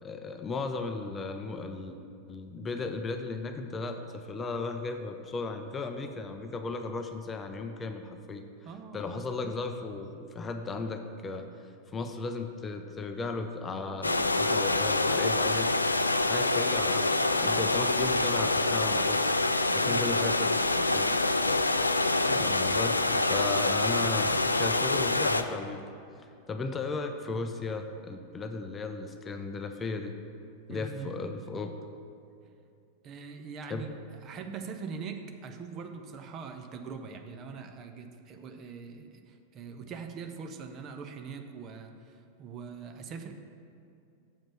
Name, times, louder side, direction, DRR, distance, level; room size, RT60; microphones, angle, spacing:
voice 1, 0.0-2.0 2.3-8.4 8.9-16.0 16.3-19.3 19.7-21.1 22.3-25.8 26.2-30.1 30.7-31.8 33.7-33.9, left 3 dB, 20° left, 6 dB, 0.5 m, -36 dB
voice 2, 8.6-9.1 19.8-20.0 22.2-22.5 30.7-31.1 33.0-33.9 34.2-43.3, right 5 dB, 30° right, 6 dB, 0.6 m, -42 dB
sound 1, 14.0-25.4, left 2 dB, 80° left, 0.3 m, -26 dB
7.4 x 5.1 x 7.0 m, 2.5 s
figure-of-eight pair, 90°, 0 cm